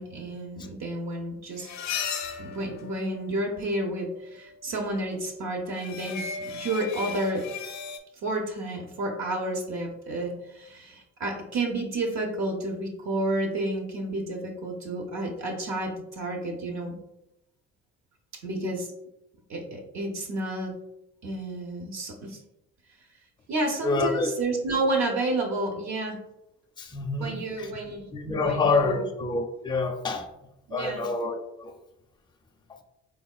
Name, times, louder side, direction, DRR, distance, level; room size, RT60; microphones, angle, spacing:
voice 1, 0.0-1.7 2.4-7.5 8.2-17.0 18.3-18.9 19.5-20.8 21.2-22.4 23.5-26.2 27.2-28.1 28.4-29.1 30.7-31.1, right 2 dB, 65° right, 0.8 m, -31 dB
sound 1, 1.6-3.6 5.8-8.0, left 6 dB, 65° left, 0.5 m, -35 dB
voice 2, 23.8-24.3 26.8-27.7 28.1-30.3 30.7-31.7, left 3 dB, 15° left, 0.5 m, -27 dB
3.6 x 3.4 x 2.3 m
cardioid pair, 90°, 30 cm